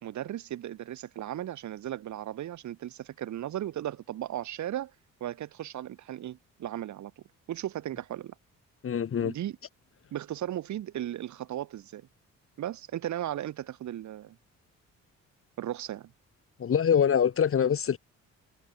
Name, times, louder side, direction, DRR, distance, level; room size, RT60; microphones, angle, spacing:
voice 1, 0.0-4.9 5.2-7.1 7.5-8.3 9.2-9.6 10.1-12.1 12.6-14.4 15.6-16.1, right 12 dB, 70° right, 2.0 m, -36 dB
voice 2, 8.8-9.3 16.6-18.0, left 8 dB, 45° left, 1.8 m, -24 dB
cardioid pair, 90°, 30 cm